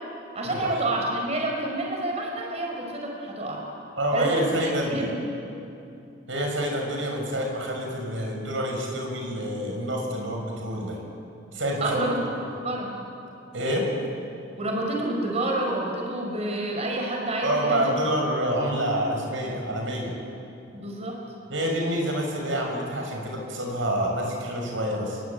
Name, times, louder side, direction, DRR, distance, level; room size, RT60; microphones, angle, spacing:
voice 1, 0.3-3.6 4.1-5.1 11.8-12.9 14.6-17.9 20.7-21.2, right 1 dB, 35° right, 0 dB, 4.7 m, -28 dB
voice 2, 4.0-5.1 6.3-11.0 11.5-12.0 13.5-13.9 17.4-20.1 21.5-25.2, equal, 80° right, 0 dB, 6.7 m, -27 dB
30.0 x 22.0 x 8.8 m, 2.7 s
head